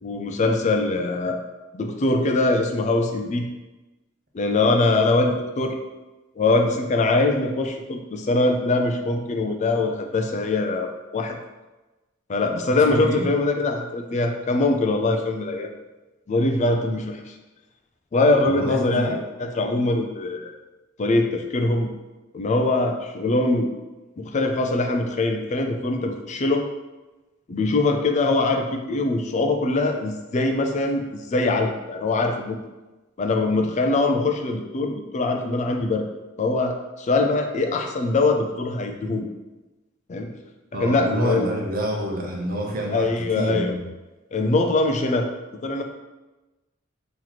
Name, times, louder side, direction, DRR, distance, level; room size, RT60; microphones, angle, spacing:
voice 1, 0.0-1.4 1.7-3.5 4.3-5.8 6.4-11.4 12.3-15.7 16.3-17.3 18.1-20.5 21.0-21.9 22.3-23.7 24.2-26.7 27.5-32.6 33.2-36.1 36.4-39.3 40.1-40.3 40.8-41.4 42.9-43.7 44.3-45.3 45.6-45.8, left 2 dB, 35° left, 4 dB, 0.4 m, -22 dB
voice 2, 12.7-13.3 18.5-19.2 40.7-43.1 43.4-43.8, equal, 45° right, -1 dB, 0.8 m, -27 dB
3.1 x 3.0 x 4.0 m, 1.1 s
head